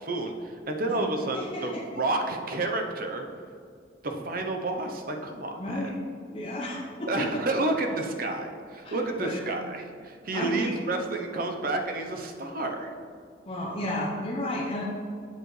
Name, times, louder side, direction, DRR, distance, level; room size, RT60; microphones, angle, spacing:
voice 1, 0.0-3.3 4.0-5.8 7.1-12.9, right 2 dB, 50° right, 4 dB, 0.7 m, -30 dB
voice 2, 1.3-2.0 5.6-6.0 6.3-7.3 8.8-9.4 10.3-10.7 13.5-14.8, left 1 dB, 30° left, -4 dB, 0.8 m, -33 dB
7.8 x 6.8 x 3.2 m, 2.2 s
head